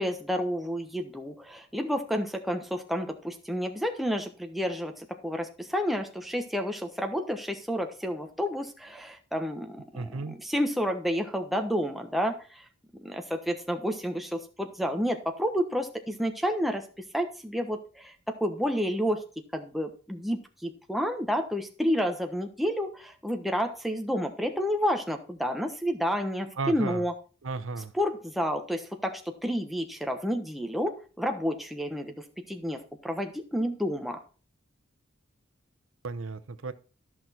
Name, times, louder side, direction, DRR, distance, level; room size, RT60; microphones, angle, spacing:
voice 1, 0.0-12.6 13.0-16.8 17.1-19.2 19.5-27.1 27.9-34.2, equal, ahead, 4 dB, 1.1 m, -30 dB
voice 2, 9.9-10.4 26.6-27.0 27.4-27.9 36.0-36.7, right 3 dB, 85° right, 12 dB, 0.8 m, -34 dB
13.5 x 6.1 x 4.4 m, 0.37 s
head